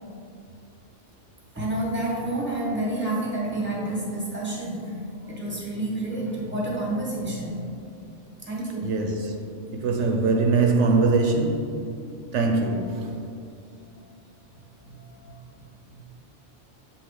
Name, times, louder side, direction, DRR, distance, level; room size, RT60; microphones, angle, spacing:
voice 1, 1.5-7.6 8.4-9.0 14.8-15.4, right 1 dB, 10° right, 1.2 m, -29 dB
voice 2, 8.8-9.3 9.7-11.9 12.3-13.2, right 3 dB, 80° right, 0.9 m, -22 dB
7.2 x 2.8 x 4.9 m
omnidirectional pair, 1.2 m